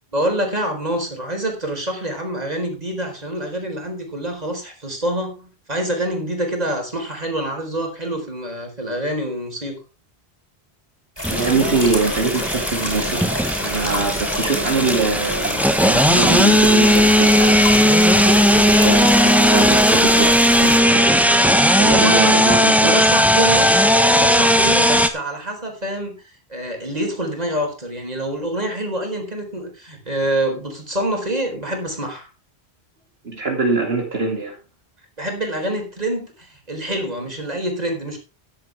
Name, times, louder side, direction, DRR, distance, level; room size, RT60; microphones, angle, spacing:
voice 1, 0.1-9.8 21.9-22.4 22.8-23.7 24.0-32.3 35.2-38.2, right 1 dB, 40° right, 2 dB, 4.2 m, -26 dB
sound 1, 11.2-20.8, equal, 25° left, 5.1 m, -28 dB
sound 2, 11.2-25.1, equal, ahead, 1.2 m, -16 dB
voice 2, 11.3-18.0 18.2-21.1 21.8-22.9 33.2-34.6, right 3 dB, 70° right, 0 dB, 2.8 m, -23 dB
14.5 x 10.5 x 3.5 m, 0.32 s
omnidirectional pair, 1.1 m